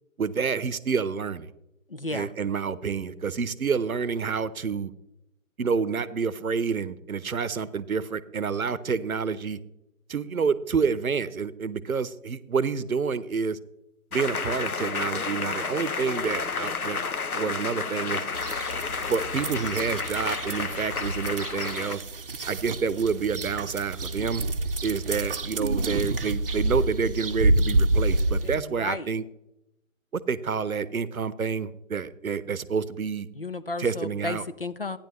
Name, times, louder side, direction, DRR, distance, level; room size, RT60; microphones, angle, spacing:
voice 1, 0.2-1.5 2.1-4.9 5.6-9.6 10.1-13.6 14.1-17.0 17.3-18.3 19.1-22.0 22.5-24.4 24.8-29.2 30.1-33.3 33.8-34.4, right 5 dB, 75° right, 17 dB, 0.8 m, -28 dB
voice 2, 1.9-2.3 28.5-29.1 33.4-35.0, left 2 dB, 45° left, 13 dB, 0.4 m, -33 dB
sound 1, 14.1-22.0, left 5 dB, 90° left, 0.8 m, -31 dB
sound 2, 18.3-28.6, right 2 dB, 40° right, 0.7 m, -28 dB
13.0 x 10.0 x 3.0 m, 0.85 s
figure-of-eight pair, 150°, 42 cm